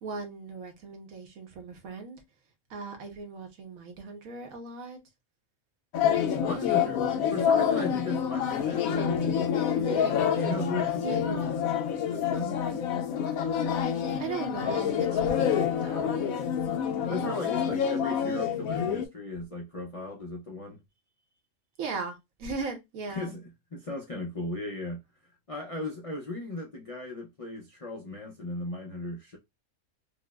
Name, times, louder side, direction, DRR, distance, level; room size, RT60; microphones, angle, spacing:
voice 1, 0.0-2.2 2.7-5.0 11.0-11.2 14.2-16.2 21.8-23.3, right 4 dB, 85° right, 1.3 m, -38 dB
sound 1, 5.9-19.1, left 8 dB, 90° left, 1.0 m, -27 dB
voice 2, 6.4-7.0 7.3-11.4 12.1-12.6 17.1-20.8 23.1-23.4 23.7-29.4, left 2 dB, 60° left, 0.3 m, -37 dB
4.8 x 2.0 x 2.3 m
omnidirectional pair, 1.4 m